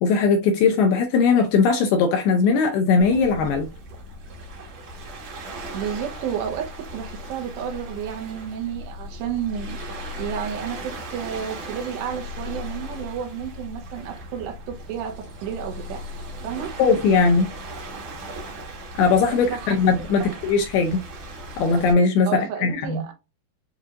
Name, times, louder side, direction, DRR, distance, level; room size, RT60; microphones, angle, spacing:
voice 1, 0.0-3.7 16.8-17.5 19.0-21.0 21.6-23.0, left 5 dB, 80° left, 2.3 m, -19 dB
Waves surf, 3.0-21.9, equal, 55° right, 2.0 m, -37 dB
voice 2, 5.7-9.8 10.2-16.0 16.4-16.7 19.3-20.4 22.3-23.1, right 8 dB, 80° right, 3.1 m, -31 dB
8.0 x 2.7 x 2.5 m
omnidirectional pair, 5.0 m